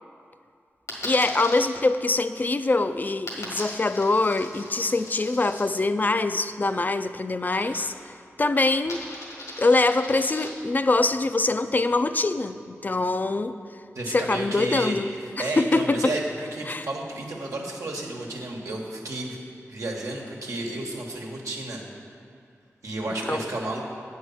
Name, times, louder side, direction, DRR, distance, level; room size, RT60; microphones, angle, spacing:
Coin (dropping), 0.9-1.6 3.3-5.6 7.5-8.1 8.4-10.5, left 1 dB, 85° left, 1.7 m, -39 dB
voice 1, 1.0-7.9 8.4-9.1 9.6-13.5 14.1-15.1 15.4-16.0 16.7-16.9 23.3-23.4, left 2 dB, 35° left, 11 dB, 0.3 m, -24 dB
voice 2, 13.9-19.4 19.7-21.8 22.8-23.8, right 2 dB, 85° right, -1 dB, 1.2 m, -32 dB
8.4 x 4.6 x 6.9 m, 2.3 s
cardioid pair, 55°, 5 cm